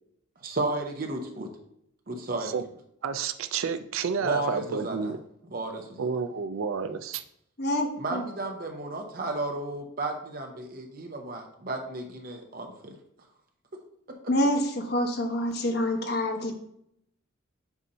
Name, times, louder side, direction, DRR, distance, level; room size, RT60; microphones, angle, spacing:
voice 1, 0.4-1.5 2.1-2.5 4.2-5.1 5.5-6.0 8.0-13.0 14.1-14.2, right 2 dB, 45° right, 0.8 m, -33 dB
voice 2, 3.0-5.2 6.0-7.2, right 6 dB, 85° right, 0.5 m, -30 dB
voice 3, 7.6-8.2 14.3-16.5, left 1 dB, 50° left, 1.0 m, -27 dB
8.1 x 2.8 x 5.4 m
head